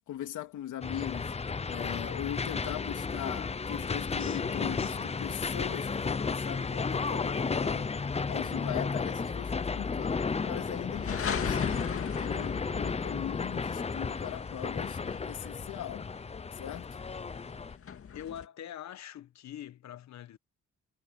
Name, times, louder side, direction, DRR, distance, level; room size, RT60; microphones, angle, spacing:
voice 1, 0.1-1.3 1.7-7.9 8.3-10.2 10.4-16.1 16.5-17.0, left 12 dB, 80° left, 2.8 m, -40 dB
sound 1, 0.8-17.8, left 4 dB, 20° left, 0.7 m, -33 dB
voice 2, 4.2-5.3 18.1-20.4, left 10 dB, 65° left, 1.2 m, -44 dB
sound 2, 5.1-18.5, left 7 dB, 50° left, 2.0 m, -41 dB
cardioid pair, 90°, 30 cm